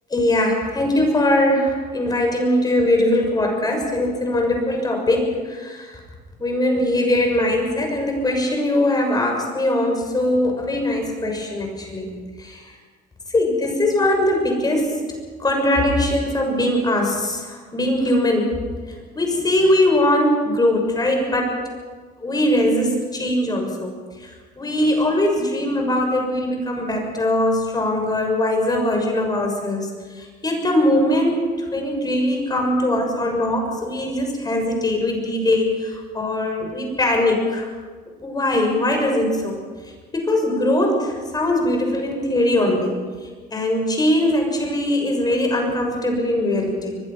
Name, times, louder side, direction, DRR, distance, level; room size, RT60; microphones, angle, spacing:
voice 1, 0.1-5.9 6.4-12.1 12.4-12.6 13.3-15.0 15.4-18.5 19.2-21.5 22.2-23.9 24.6-29.9 30.4-31.5 31.7-37.7 38.2-39.6 40.1-42.9 43.5-47.0, left 1 dB, 25° left, 2 dB, 6.4 m, -21 dB
23.5 x 21.5 x 5.9 m, 1.5 s
cardioid pair, 110°, 17 cm